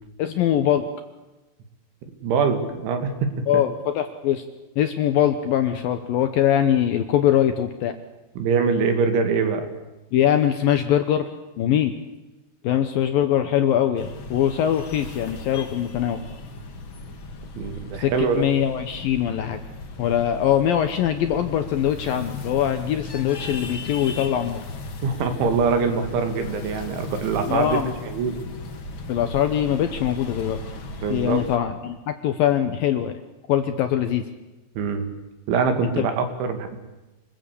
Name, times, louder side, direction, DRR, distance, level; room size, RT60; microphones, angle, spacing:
voice 1, 0.2-0.9 3.5-4.4 4.8-8.0 10.1-11.3 11.6-11.9 12.6-16.2 18.0-19.6 20.0-24.6 27.5-27.9 29.1-30.6 31.1-33.1 33.5-34.3 36.0-36.1, left 10 dB, 75° left, 8 dB, 2.2 m, -22 dB
voice 2, 2.2-3.6 8.4-9.7 17.6-18.5 25.0-27.8 28.1-28.4 31.0-31.4 34.8-35.1 35.5-36.8, right 5 dB, 85° right, 7 dB, 4.8 m, -23 dB
sound 1, 13.9-31.6, left 3 dB, 55° left, 1.4 m, -36 dB
26.5 x 20.5 x 8.5 m, 1.1 s
omnidirectional pair, 5.3 m